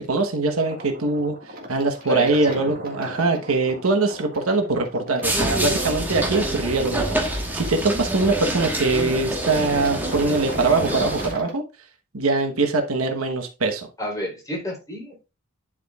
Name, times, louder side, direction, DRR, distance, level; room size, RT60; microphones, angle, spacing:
voice 1, 0.0-1.3 1.7-11.6 12.1-13.9, right 3 dB, 85° right, 5 dB, 1.1 m, -22 dB
sound 1, 0.6-11.5, equal, 45° right, 1.8 m, -37 dB
voice 2, 2.0-2.7 14.0-15.3, left 1 dB, 15° left, -2 dB, 3.3 m, -31 dB
sound 2, 5.2-11.3, right 1 dB, 10° right, 1.3 m, -27 dB
11.0 x 5.0 x 2.3 m, 0.28 s
head